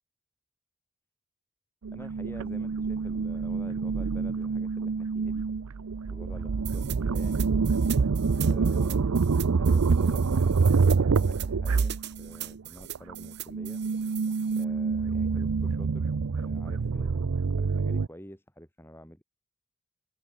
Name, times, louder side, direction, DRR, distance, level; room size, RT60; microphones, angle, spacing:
sound 1, 1.8-12.6 12.9-18.1, right 4 dB, 80° right, 0.5 m, -26 dB
voice 1, 1.9-5.5 6.1-7.5 8.3-9.1 9.6-13.8 14.5-19.2, equal, 10° left, 6.4 m, -48 dB
sound 2, 6.6-14.6, right 14 dB, 50° right, 2.3 m, -41 dB
open air
head